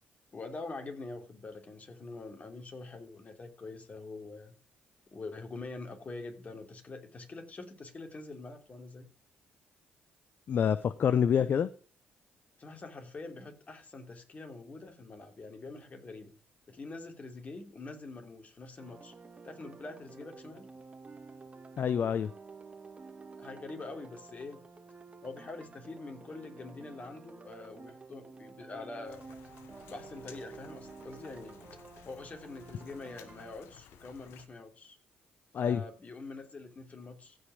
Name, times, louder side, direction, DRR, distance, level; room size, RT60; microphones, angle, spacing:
voice 1, 0.3-4.5 5.1-9.1 12.6-16.3 16.7-19.1 19.4-20.7 23.4-24.6 25.2-29.2 29.9-31.6 32.0-35.0 35.6-37.4, left 3 dB, 35° left, 3.1 m, -45 dB
voice 2, 10.5-11.7 21.8-22.3 35.5-35.8, left 8 dB, 55° left, 0.6 m, -27 dB
sound 1, 18.8-33.6, right 4 dB, 30° right, 2.0 m, -51 dB
Rain, 29.0-34.5, left 9 dB, 85° left, 1.2 m, -56 dB
15.5 x 5.3 x 4.8 m
supercardioid pair, 70°, 4 cm